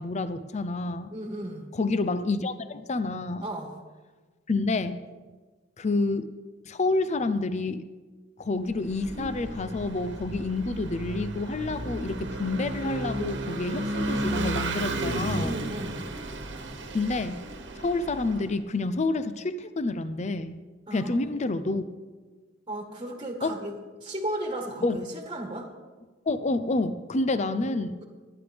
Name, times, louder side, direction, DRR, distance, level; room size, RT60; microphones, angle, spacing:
voice 1, 0.0-1.1 1.7-3.5 4.5-5.0 5.8-6.3 6.7-7.8 8.4-15.5 16.9-17.4 17.8-20.6 20.9-21.8 23.4-23.5 24.8-25.0 26.3-28.0, left 2 dB, 35° left, 12 dB, 0.6 m, -28 dB
voice 2, 1.1-1.7 3.4-3.8 15.4-16.0 20.9-21.3 21.7-21.8 22.7-23.7 24.0-25.7 27.6-28.0, right 1 dB, 25° right, 3 dB, 1.5 m, -35 dB
Vehicle / Engine, 8.7-18.5, right 1 dB, 65° right, 1.4 m, -33 dB
23.5 x 9.7 x 3.5 m, 1.3 s
head